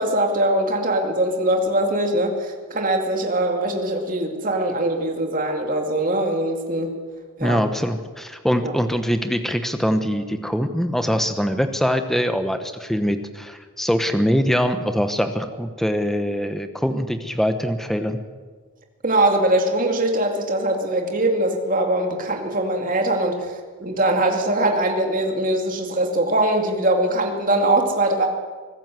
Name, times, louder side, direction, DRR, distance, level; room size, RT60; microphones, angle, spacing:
voice 1, 0.0-7.0 7.4-7.6 8.6-8.7 19.0-28.3, right 1 dB, 35° right, 3 dB, 2.5 m, -22 dB
voice 2, 7.4-18.2, equal, ahead, 8 dB, 1.1 m, -23 dB
24.5 x 15.0 x 7.7 m, 1.5 s
head